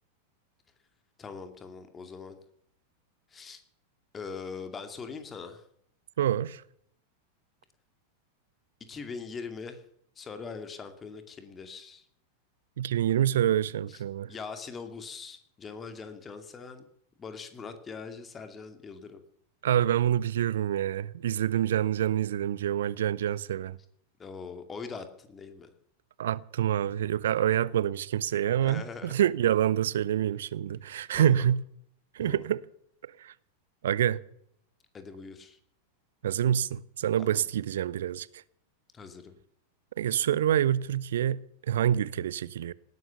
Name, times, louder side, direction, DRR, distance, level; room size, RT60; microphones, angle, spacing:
voice 1, 1.2-2.4 3.3-3.6 4.1-5.6 8.8-9.8 10.2-12.1 13.9-14.0 14.3-16.8 17.2-19.2 24.2-25.7 28.6-29.1 31.1-31.5 32.2-32.4 34.9-35.6 37.2-37.4 38.9-39.4, left 5 dB, 20° left, 2.4 m, -42 dB
voice 2, 6.2-6.6 12.8-14.3 19.6-23.8 26.2-31.6 32.1-32.6 33.2-33.3 33.8-34.2 36.2-38.3 40.0-41.4 41.7-42.7, right 10 dB, 60° right, 0.6 m, -27 dB
18.5 x 10.5 x 7.0 m
figure-of-eight pair, 90°, 0 cm